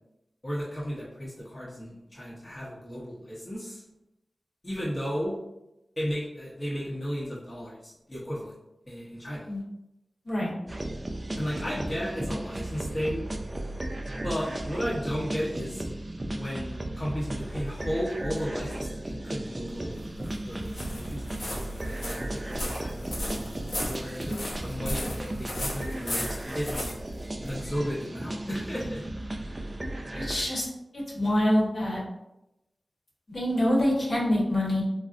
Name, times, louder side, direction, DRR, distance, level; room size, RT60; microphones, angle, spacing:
voice 1, 0.4-3.8 4.6-5.4 6.0-8.5 8.9-9.5 11.4-13.3 14.2-15.8 16.3-20.1 20.5-23.4 23.9-26.3 26.5-26.9 27.4-29.0, equal, 35° left, -7 dB, 0.8 m, -34 dB
sound 1, 10.7-30.4, right 1 dB, 30° right, 0.3 m, -35 dB
sound 2, 19.7-27.9, left 1 dB, 90° left, 0.7 m, -36 dB
voice 2, 30.1-30.7 30.9-32.0 33.3-34.8, left 1 dB, 60° left, -5 dB, 1.0 m, -25 dB
3.7 x 2.0 x 2.4 m, 0.89 s
wide cardioid pair, 80°, 0 cm